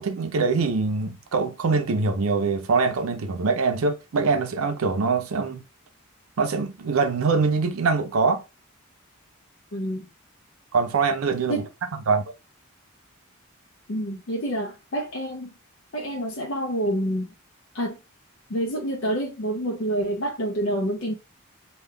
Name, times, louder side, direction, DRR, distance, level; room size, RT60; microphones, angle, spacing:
voice 1, 0.0-5.6 6.4-8.4 10.7-11.6 12.1-12.2, right 4 dB, 80° right, 0.5 m, -23 dB
voice 2, 9.7-10.1 11.5-11.7 13.9-15.5 15.9-17.3 17.7-18.0 18.5-21.1, right 1 dB, 60° left, 0.6 m, -27 dB
3.6 x 2.3 x 3.3 m
head